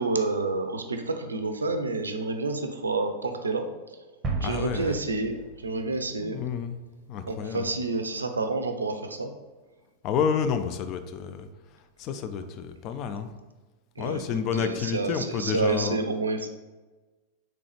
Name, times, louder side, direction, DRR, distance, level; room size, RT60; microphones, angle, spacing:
voice 1, 0.0-4.0 4.4-6.4 7.3-9.3 14.0-14.2 14.5-16.5, right 3 dB, 75° right, 6 dB, 0.4 m, -29 dB
sound 1, 4.2-6.7, right 3 dB, 20° right, 0.7 m, -35 dB
voice 2, 4.4-5.0 6.2-6.8 7.1-7.7 10.0-11.5 12.0-13.3 14.0-16.0, left 7 dB, 40° left, 9 dB, 0.3 m, -29 dB
3.8 x 3.2 x 3.2 m, 1.2 s
figure-of-eight pair, 90°, 0 cm